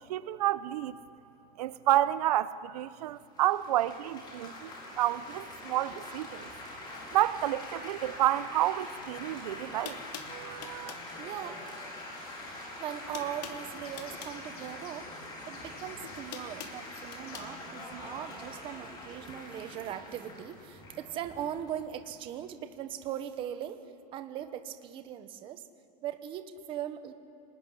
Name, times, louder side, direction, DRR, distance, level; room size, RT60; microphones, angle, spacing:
voice 1, 0.1-1.0 1.6-6.5 7.1-10.0 10.3-10.9, right 14 dB, 65° right, 14 dB, 0.8 m, -30 dB
Laughter / Applause / Chatter, 3.4-22.5, left 1 dB, 20° left, 4.7 m, -44 dB
sound 1, 9.3-9.4 9.8-11.1 12.3-12.6 12.8-14.4 15.6-17.5, left 8 dB, 85° left, 3.0 m, -45 dB
sound 2, 10.5-18.8, left 5 dB, 65° left, 7.7 m, -58 dB
voice 2, 11.2-11.6 12.8-15.1 15.5-25.6 26.0-27.1, right 10 dB, 25° right, 9 dB, 1.1 m, -39 dB
25.5 x 20.0 x 9.9 m, 2.5 s
supercardioid pair, 175°, 21 cm